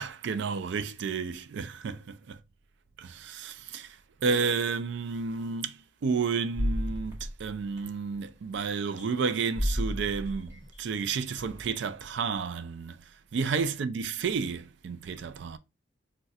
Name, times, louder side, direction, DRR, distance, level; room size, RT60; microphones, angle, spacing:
voice 1, 0.0-2.4 3.0-4.0 4.2-13.0 13.3-15.6, right 5 dB, 65° right, 0.3 m, -31 dB
sound 1, 5.4-5.5 6.5-8.2 9.0-9.3 9.6-11.7, equal, 20° right, 1.0 m, -33 dB
4.0 x 2.2 x 2.3 m
head